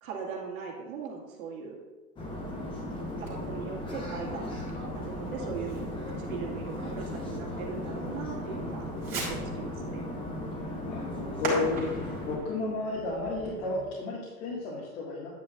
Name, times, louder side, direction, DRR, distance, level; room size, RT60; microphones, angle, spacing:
voice 1, 0.0-1.8 3.2-4.5 4.9-5.8 6.2-10.0, right 6 dB, 60° right, -2 dB, 2.0 m, -39 dB
sound 1, 2.2-12.4, left 1 dB, 10° left, 0.8 m, -36 dB
Fireworks, 3.2-13.9, right 2 dB, 20° right, 2.6 m, -42 dB
voice 2, 10.9-15.3, left 3 dB, 50° left, -6 dB, 2.0 m, -32 dB
9.4 x 8.4 x 2.5 m, 1.3 s
hypercardioid pair, 140°, 47 cm